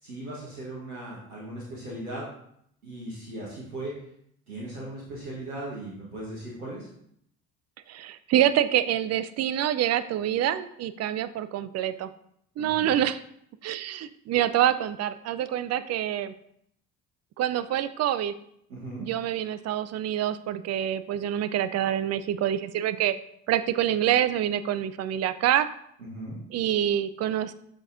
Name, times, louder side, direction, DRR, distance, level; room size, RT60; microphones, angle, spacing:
voice 1, 0.0-2.3 2.8-4.0 4.5-6.9 12.6-13.0 18.7-19.1 26.1-26.4, right 1 dB, 85° right, -6 dB, 1.4 m, -38 dB
voice 2, 7.9-12.1 12.6-13.2 13.6-16.3 17.4-18.3 19.0-23.2 23.5-25.7 26.5-27.5, right 11 dB, 40° right, 13 dB, 0.4 m, -26 dB
6.7 x 5.9 x 2.6 m, 0.71 s
figure-of-eight pair, 50°, 42 cm